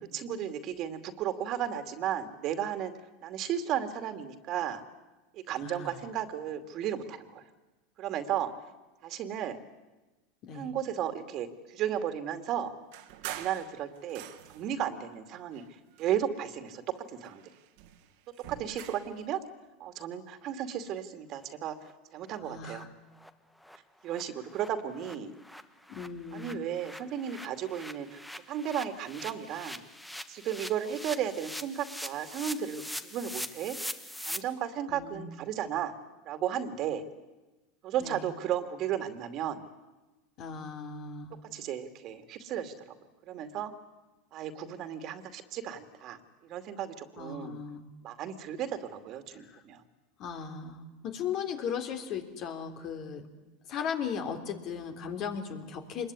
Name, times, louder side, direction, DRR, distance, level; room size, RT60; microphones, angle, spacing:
voice 1, 0.1-2.9 3.2-4.8 5.3-7.4 8.0-8.5 9.0-9.6 10.5-12.7 13.3-14.2 14.5-15.6 16.0-16.8 17.1-17.4 18.5-19.4 19.8-21.8 22.1-22.8 24.0-25.3 26.3-28.2 28.5-29.8 30.3-33.8 34.2-35.9 36.3-37.0 37.8-39.6 41.5-42.7 43.3-43.7 44.3-47.6 48.0-49.8, right 9 dB, 50° right, 9 dB, 2.5 m, -34 dB
voice 2, 5.6-6.0 10.4-10.7 22.4-22.9 25.9-26.7 34.9-35.3 38.0-38.3 40.4-41.4 47.2-47.9 49.3-49.6 50.2-53.3 53.7-56.1, left 7 dB, 50° left, 6 dB, 3.5 m, -37 dB
sound 1, 12.9-14.8 15.5-16.6 16.9-19.2, right 12 dB, 70° right, 2.2 m, -46 dB
sound 2, 21.4-21.5 21.8-21.9 22.3-22.4 22.7-22.8 23.2-23.3 23.6-23.8 24.1-24.2 24.5-34.4, equal, 5° left, 1.4 m, -42 dB
25.5 x 21.5 x 9.8 m, 1.1 s
supercardioid pair, 110°, 0 cm